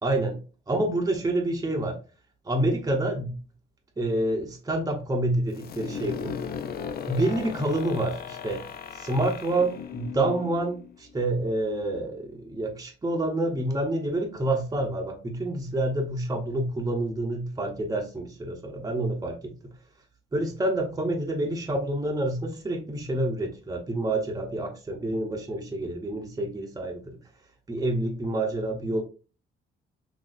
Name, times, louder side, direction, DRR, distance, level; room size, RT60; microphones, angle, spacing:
voice 1, 0.0-0.4 0.7-2.0 2.4-3.4 4.0-6.3 7.1-8.6 8.9-19.5 20.3-27.2 27.7-29.0, right 1 dB, 20° right, 1 dB, 0.8 m, -28 dB
sound 1, 5.5-11.2, left 7 dB, 50° left, 0.5 m, -37 dB
3.9 x 2.7 x 2.5 m, 0.33 s
cardioid pair, 90°, 20 cm